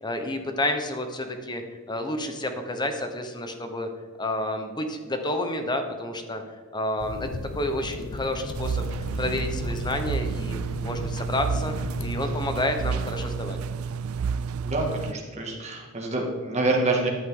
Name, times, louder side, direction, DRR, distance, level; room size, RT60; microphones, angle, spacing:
voice 1, 0.0-1.6 1.9-3.9 4.2-6.4 6.7-7.3 7.5-8.8 9.2-11.7 12.0-13.6, left 1 dB, 20° left, 6 dB, 1.2 m, -29 dB
sound 1, 7.0-12.5, left 2 dB, 70° left, 0.6 m, -35 dB
sound 2, 8.5-15.1, right 6 dB, 75° right, 0.3 m, -30 dB
voice 2, 14.6-17.1, right 2 dB, 30° right, 0 dB, 2.3 m, -26 dB
14.0 x 9.2 x 3.9 m, 1.5 s
head